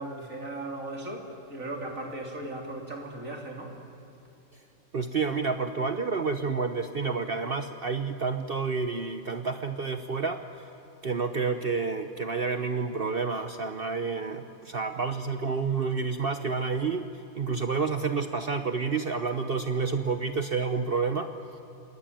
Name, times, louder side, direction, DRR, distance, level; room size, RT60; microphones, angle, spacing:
voice 1, 0.0-3.8, right 2 dB, 70° right, 2 dB, 3.4 m, -37 dB
voice 2, 4.9-10.4 11.0-17.1 17.3-21.3, right 4 dB, 45° right, 8 dB, 1.1 m, -29 dB
28.5 x 21.5 x 9.2 m, 2.9 s
omnidirectional pair, 1.4 m